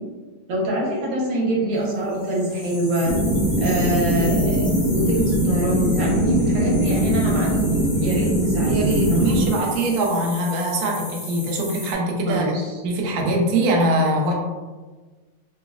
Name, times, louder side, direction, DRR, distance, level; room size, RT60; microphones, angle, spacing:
voice 1, 0.5-3.1 3.6-4.7 4.9-7.5 8.0-9.2 12.3-12.7 13.2-13.3, right 1 dB, 70° right, -4 dB, 1.5 m, -24 dB
sound 1, 2.1-11.9, left 1 dB, 50° left, 0.4 m, -36 dB
sound 2, 3.1-9.5, right 1 dB, 85° left, 1.5 m, -21 dB
voice 2, 8.7-12.5 12.8-14.3, right 1 dB, 85° right, -1 dB, 0.8 m, -22 dB
3.8 x 2.0 x 2.3 m, 1.3 s
omnidirectional pair, 2.3 m